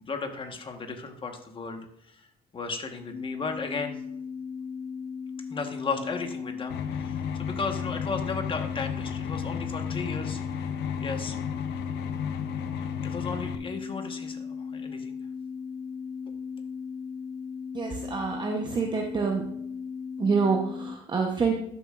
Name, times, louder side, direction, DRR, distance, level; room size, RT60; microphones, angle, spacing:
voice 1, 0.1-4.0 5.5-10.4 11.0-11.4 13.0-15.2, left 4 dB, 30° left, 5 dB, 1.2 m, -35 dB
sound 1, 3.1-21.0, left 6 dB, 60° left, 1.2 m, -37 dB
sound 2, 6.7-13.5, left 7 dB, 80° left, 0.6 m, -34 dB
voice 2, 17.7-19.5 20.2-21.5, right 5 dB, 25° right, 2 dB, 0.9 m, -27 dB
12.0 x 7.0 x 2.5 m, 0.75 s
cardioid pair, 110°, 17 cm